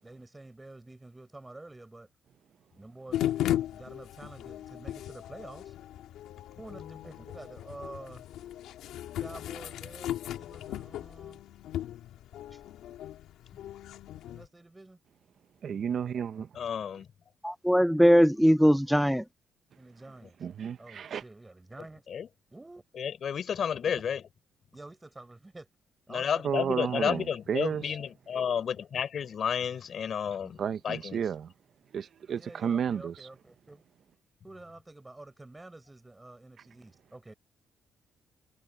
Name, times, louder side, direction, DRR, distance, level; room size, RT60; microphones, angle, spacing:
voice 1, 0.0-2.1 2.8-5.7 6.6-8.2 9.2-11.4 14.3-15.0 19.8-20.4 20.8-22.1 22.5-22.8 24.7-25.7 26.1-27.2 32.3-33.8 34.4-37.3, right 2 dB, 15° right, 7.4 m, -48 dB
sound 1, 3.1-14.5, left 12 dB, 85° left, 2.3 m, -37 dB
voice 2, 15.6-16.5 20.4-21.2 26.4-27.8 30.6-31.5 31.9-33.1, right 8 dB, 55° right, 1.1 m, -32 dB
voice 3, 16.5-17.1 22.1-22.3 23.0-24.2 26.1-31.2, left 7 dB, 55° left, 5.2 m, -31 dB
voice 4, 17.4-19.2, equal, ahead, 0.5 m, -21 dB
cardioid pair, 90°, 0 cm